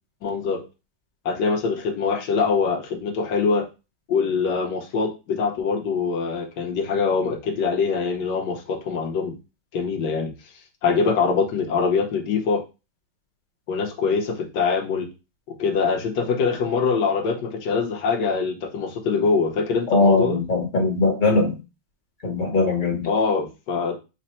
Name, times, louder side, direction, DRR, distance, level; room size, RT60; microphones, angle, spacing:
voice 1, 0.2-0.7 1.2-3.7 4.1-9.3 9.7-10.3 10.8-12.6 13.7-15.1 15.6-20.4 23.1-24.0, left 5 dB, 65° left, 2 dB, 1.2 m, -23 dB
voice 2, 19.9-21.5 22.2-23.1, left 3 dB, 35° left, 0 dB, 0.7 m, -20 dB
5.1 x 2.0 x 4.2 m, 0.28 s
omnidirectional pair, 2.3 m